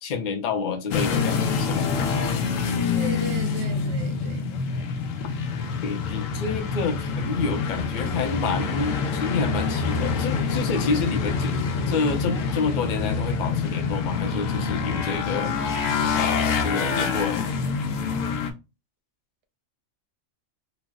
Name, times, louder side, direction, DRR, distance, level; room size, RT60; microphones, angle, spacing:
voice 1, 0.0-1.9 5.8-15.6 16.2-17.5, left 5 dB, 55° left, 0.5 m, -28 dB
sound 1, 0.9-18.5, left 5 dB, 80° left, 1.0 m, -26 dB
voice 2, 2.9-4.5, right 5 dB, 65° right, 0.9 m, -35 dB
3.0 x 2.0 x 3.4 m
omnidirectional pair, 1.3 m